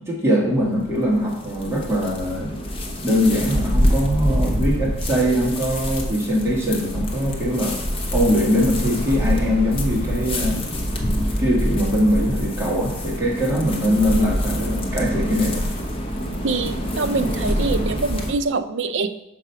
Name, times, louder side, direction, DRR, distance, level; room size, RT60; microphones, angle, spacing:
voice 1, 0.0-2.6 3.0-7.8 8.1-10.6 11.1-15.6, equal, 15° right, -4 dB, 1.6 m, -22 dB
sound 1, 0.6-18.3, equal, 25° left, 0.8 m, -25 dB
voice 2, 16.4-19.1, right 3 dB, 60° right, 10 dB, 0.5 m, -24 dB
6.1 x 4.8 x 5.7 m, 0.87 s
head